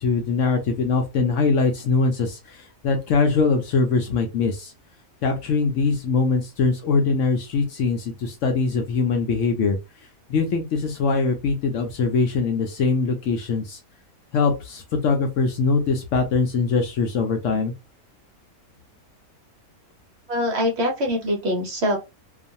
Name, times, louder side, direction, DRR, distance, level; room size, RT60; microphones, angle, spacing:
voice 1, 0.0-2.6 2.8-4.7 5.2-9.8 10.3-13.8 14.3-17.7, left 4 dB, 65° left, 4 dB, 0.8 m, -22 dB
voice 2, 20.3-22.0, equal, 55° right, 1 dB, 0.9 m, -23 dB
2.5 x 2.3 x 2.6 m, 0.25 s
omnidirectional pair, 1.6 m